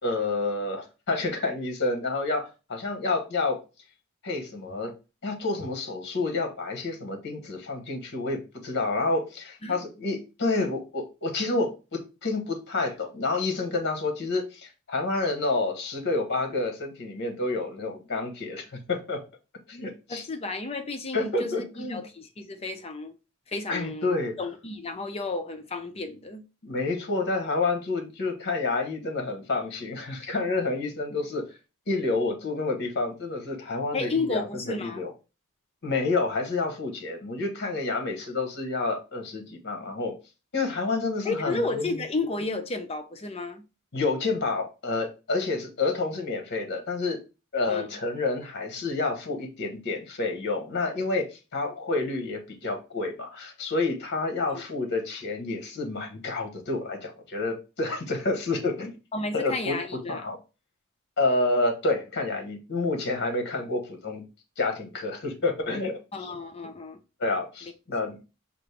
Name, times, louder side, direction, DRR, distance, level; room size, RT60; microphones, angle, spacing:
voice 1, 0.0-3.6 4.2-4.9 5.2-19.2 19.7-20.2 21.1-22.0 23.7-24.4 26.6-31.4 31.9-35.1 35.8-40.1 40.5-42.0 43.9-47.2 47.5-51.3 51.5-58.9 59.3-59.8 60.1-60.4 61.2-64.2 64.6-66.3 67.2-68.2, left 3 dB, 50° left, 1.1 m, -29 dB
voice 2, 20.1-23.1 23.5-26.4 33.9-35.0 41.2-43.6 47.7-47.9 54.4-54.6 59.1-60.2 66.1-67.0, left 3 dB, 30° left, 0.6 m, -32 dB
5.2 x 2.5 x 3.3 m
head